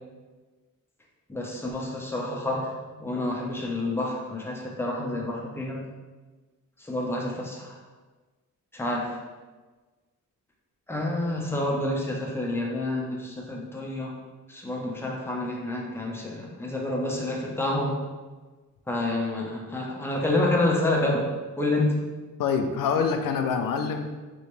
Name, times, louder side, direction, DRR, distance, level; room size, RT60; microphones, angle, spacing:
voice 1, 1.3-2.7 3.0-5.9 6.8-7.8 8.7-9.2 10.9-14.1 14.5-18.0 18.9-21.3 21.6-22.0, left 2 dB, 5° left, -2 dB, 0.7 m, -28 dB
voice 2, 22.4-24.1, left 6 dB, 90° left, 6 dB, 0.5 m, -25 dB
5.0 x 3.1 x 3.1 m, 1.3 s
wide cardioid pair, 125°, 32 cm